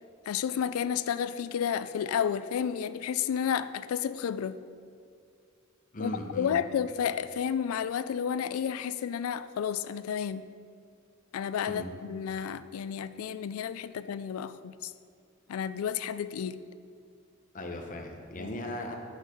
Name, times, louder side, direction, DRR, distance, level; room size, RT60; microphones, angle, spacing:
voice 1, 0.3-4.6 6.0-10.5 11.3-14.9 15.5-16.6 18.4-18.5, left 8 dB, 90° left, 15 dB, 0.3 m, -31 dB
voice 2, 5.9-6.6 11.7-11.9 17.5-19.0, left 1 dB, 40° left, 2 dB, 0.9 m, -37 dB
6.5 x 6.3 x 5.1 m, 2.5 s
head